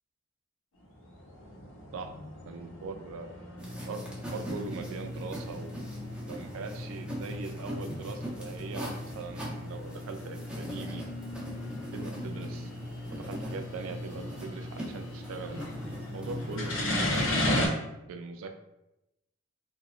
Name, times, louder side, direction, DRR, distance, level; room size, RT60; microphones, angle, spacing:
sound 1, 0.8-17.7, left 1 dB, 80° left, 0.6 m, -37 dB
voice 1, 2.5-3.3 3.9-5.9 6.3-11.0 11.9-12.7 13.1-15.7 16.1-17.7 18.1-18.6, right 4 dB, 75° right, 6 dB, 0.3 m, -41 dB
sound 2, 3.6-17.3, left 1 dB, 5° right, 0.5 m, -39 dB
2.8 x 2.1 x 2.3 m, 0.92 s
head